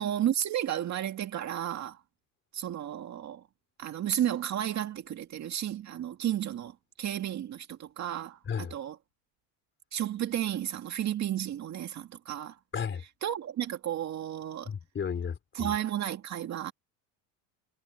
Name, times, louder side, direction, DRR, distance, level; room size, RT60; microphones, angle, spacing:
voice 1, 0.0-2.0 2.5-3.4 3.8-8.4 8.7-9.0 9.9-12.6 13.2-14.7 15.5-16.7, right 11 dB, 35° right, 2.2 m, -32 dB
voice 2, 12.7-13.0 14.6-15.7, left 6 dB, 25° left, 4.1 m, -34 dB
supercardioid pair, 130°, 48 cm